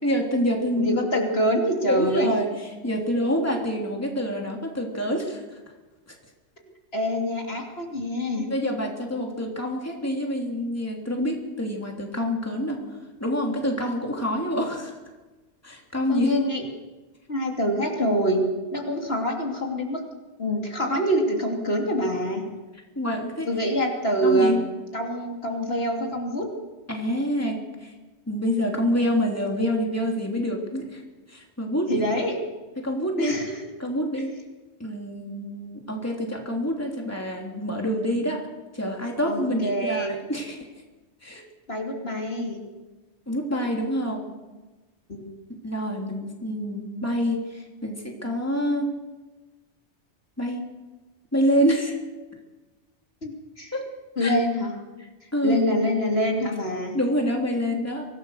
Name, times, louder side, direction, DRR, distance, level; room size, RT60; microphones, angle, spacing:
voice 1, 0.0-1.0 1.9-2.5 2.8-5.6 8.4-12.8 13.2-15.0 15.6-16.3 22.9-23.5 24.2-24.6 26.9-27.9 28.3-31.0 31.3-31.9 32.8-33.3 33.8-34.3 34.8-38.4 38.7-40.7 41.2-41.4 43.3-44.2 45.6-48.9 50.4-50.6 51.3-52.0 53.7-53.8 54.2-54.4 55.3-55.6 56.9-58.1, equal, 10° left, 0 dB, 3.3 m, -26 dB
voice 2, 0.8-2.3 6.9-8.5 16.1-16.6 17.3-18.4 18.7-20.0 20.4-22.4 23.5-24.6 24.9-26.5 31.9-32.4 33.2-33.6 39.3-40.1 41.7-42.6 45.1-45.2 53.2-53.7 54.2-54.7 55.4-57.0, equal, 55° left, 0 dB, 3.1 m, -25 dB
24.5 x 18.0 x 6.6 m, 1.2 s
omnidirectional pair, 1.2 m